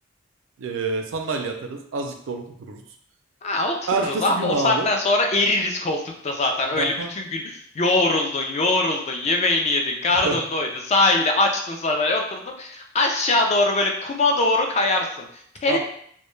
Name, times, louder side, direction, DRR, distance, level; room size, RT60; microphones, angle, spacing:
voice 1, 0.6-2.8 3.9-4.9 6.7-7.1 10.2-10.4 15.7-15.8, right 3 dB, 85° right, 4 dB, 0.4 m, -27 dB
voice 2, 3.4-15.8, left 2 dB, 35° left, 2 dB, 0.4 m, -22 dB
2.1 x 2.1 x 3.0 m, 0.66 s
head